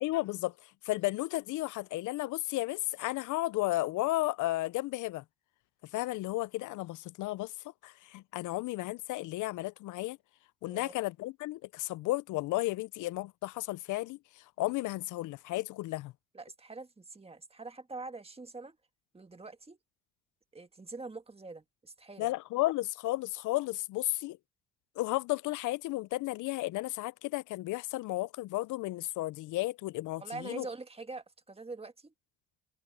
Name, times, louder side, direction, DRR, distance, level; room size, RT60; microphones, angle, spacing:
voice 1, 0.0-5.2 5.9-7.5 7.8-10.2 10.6-16.1 22.2-24.4 25.0-30.7, left 18 dB, 80° left, 0.5 m, -33 dB
voice 2, 16.3-18.8 19.1-19.8 20.5-22.3 30.2-32.1, right 3 dB, 20° right, 1.7 m, -44 dB
cardioid pair, 90°, 30 cm